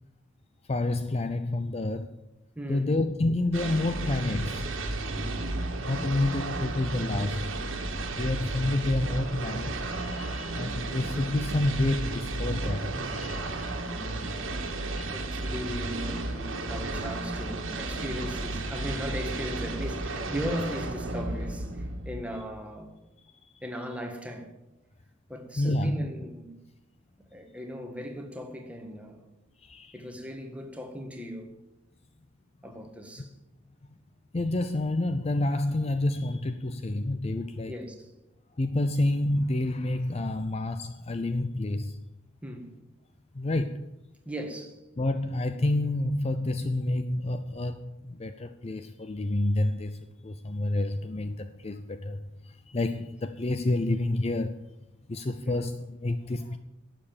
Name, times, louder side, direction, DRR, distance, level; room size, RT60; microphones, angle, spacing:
voice 1, 0.7-2.1 2.7-4.7 5.9-7.5 8.2-13.7 14.2-14.4 14.8-15.1 25.6-26.1 29.6-29.9 34.3-37.7 38.6-42.0 43.3-43.9 45.0-54.6 55.1-56.6, left 2 dB, 30° left, 0.5 m, -29 dB
voice 2, 2.6-2.9 5.2-5.5 15.1-22.9 23.6-24.5 25.3-26.5 27.3-29.2 29.9-31.5 32.6-33.3 37.7-38.1 42.4-42.7 44.3-44.8 55.4-55.6, equal, 5° right, 1.7 m, -37 dB
sound 1, 3.5-22.5, right 2 dB, 80° right, 1.7 m, -33 dB
11.5 x 7.5 x 8.7 m
head